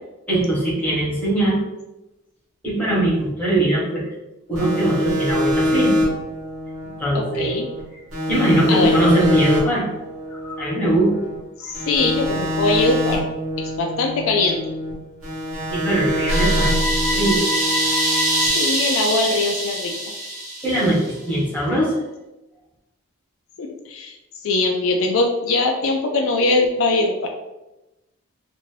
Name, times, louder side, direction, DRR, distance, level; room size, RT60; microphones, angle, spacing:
voice 1, 0.3-1.6 2.6-4.1 4.5-5.9 7.0-7.5 8.3-9.9 10.3-11.1 11.6-11.8 15.7-17.4 17.9-18.1 20.6-21.0 21.2-22.0, right 1 dB, 5° left, -7 dB, 1.0 m, -21 dB
sound 1, 4.5-7.8 8.1-11.4 11.7-14.9 15.2-18.5, equal, 80° right, 1.2 m, -25 dB
voice 2, 7.1-7.7 8.7-9.3 11.6-13.2 13.8-14.6 18.4-19.9 23.6-24.1 24.4-27.3, left 3 dB, 65° left, 3 dB, 0.3 m, -21 dB
sound 2, 16.3-21.1, right 1 dB, 30° right, 0.9 m, -22 dB
2.6 x 2.5 x 3.1 m, 0.98 s
head